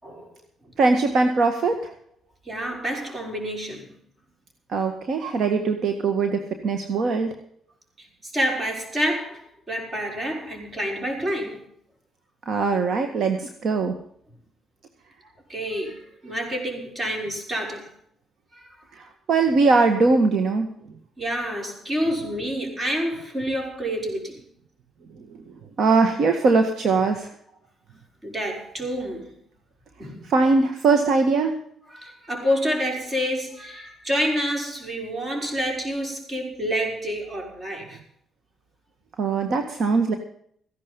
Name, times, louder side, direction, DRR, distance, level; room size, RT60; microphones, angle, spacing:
voice 1, 0.0-0.3 0.7-0.8 2.5-3.9 8.0-11.7 15.5-17.9 18.5-18.8 21.2-24.5 28.2-29.3 30.0-30.2 31.9-38.0, equal, 30° right, 5.9 m, -28 dB
voice 2, 0.8-1.9 4.7-7.3 12.5-13.9 19.0-20.7 25.8-27.3 30.3-31.5 39.2-40.1, right 4 dB, 65° right, 1.8 m, -21 dB
15.5 x 11.5 x 5.4 m
cardioid pair, 90°, 0 cm